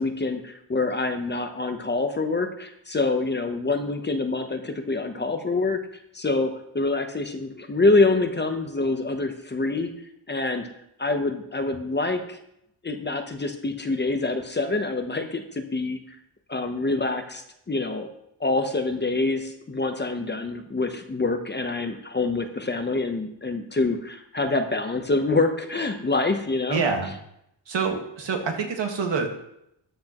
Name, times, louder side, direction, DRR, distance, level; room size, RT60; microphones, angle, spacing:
voice 1, 0.0-9.9 10.3-10.7 11.0-12.4 12.8-16.2 16.5-18.1 18.4-26.8, left 3 dB, 25° left, 5 dB, 0.9 m, -26 dB
voice 2, 26.7-27.1 27.7-29.3, right 5 dB, 70° right, 3 dB, 1.8 m, -26 dB
13.0 x 8.5 x 3.0 m, 0.78 s
wide cardioid pair, 135°, 46 cm